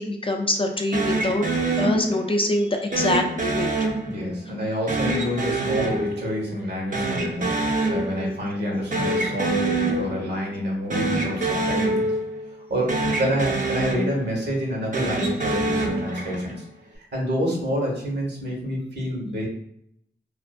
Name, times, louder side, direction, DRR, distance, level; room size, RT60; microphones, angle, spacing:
voice 1, 0.0-1.4 1.8-3.7, left 2 dB, 30° left, 3 dB, 0.4 m, -24 dB
sound 1, 0.9-2.4 2.9-4.5 4.9-6.7 6.9-8.5 8.7-10.4 10.8-12.6 12.9-14.5 14.9-16.6, right 2 dB, 45° right, 0.6 m, -26 dB
voice 2, 4.0-12.0 12.7-16.6 16.9-19.5, equal, 70° right, -2 dB, 1.0 m, -28 dB
2.5 x 2.4 x 2.3 m, 0.73 s
cardioid pair, 50°, 18 cm